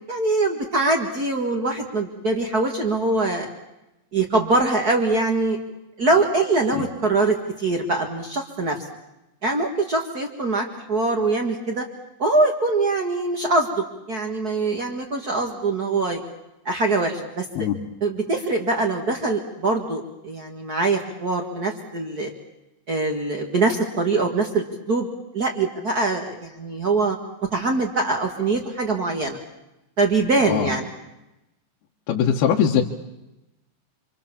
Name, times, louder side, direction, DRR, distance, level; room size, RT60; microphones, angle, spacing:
voice 1, 0.1-3.5 4.1-5.6 6.0-8.8 9.4-11.8 12.2-16.2 16.6-17.4 18.0-22.3 22.9-25.1 25.3-27.2 27.5-29.4 30.0-30.9, right 3 dB, 75° right, 3 dB, 0.8 m, -23 dB
voice 2, 32.1-32.8, left 8 dB, 65° left, 0 dB, 2.9 m, -20 dB
27.5 x 26.0 x 7.2 m, 0.94 s
omnidirectional pair, 5.4 m